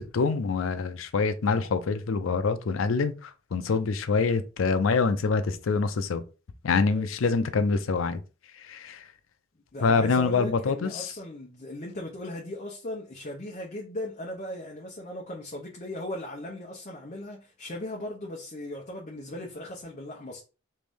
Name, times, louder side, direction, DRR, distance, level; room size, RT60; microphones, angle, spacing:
voice 1, 0.0-6.2 6.6-8.2 8.7-9.0 9.8-11.1, left 4 dB, 75° left, 0.5 m, -25 dB
voice 2, 9.7-20.4, left 1 dB, 35° left, 0.7 m, -38 dB
3.2 x 2.6 x 3.4 m
head